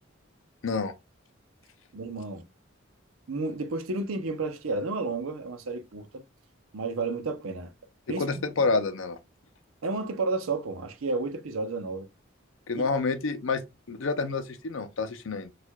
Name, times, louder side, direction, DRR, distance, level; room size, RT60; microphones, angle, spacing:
voice 1, 1.9-2.4 3.3-6.2 6.7-7.7 8.1-8.3 9.8-12.1 12.8-12.9, right 3 dB, 90° right, 0.7 m, -31 dB
voice 2, 8.1-9.2 12.7-15.5, left 4 dB, 70° left, 0.6 m, -28 dB
4.5 x 2.4 x 2.2 m
head